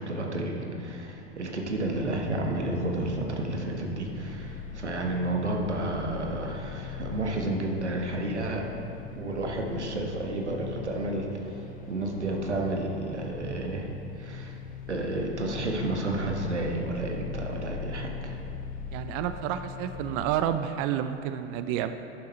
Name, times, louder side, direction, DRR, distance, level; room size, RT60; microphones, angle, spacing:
voice 1, 0.0-8.6 9.2-13.9 14.2-14.6 14.9-18.4, right 2 dB, 90° right, 1 dB, 1.2 m, -31 dB
sound 1, 1.1-20.6, left 7 dB, 25° left, 0.5 m, -41 dB
voice 2, 18.9-21.9, right 10 dB, 45° right, 10 dB, 0.4 m, -30 dB
10.0 x 7.2 x 4.3 m, 2.9 s
figure-of-eight pair, 80°, 34 cm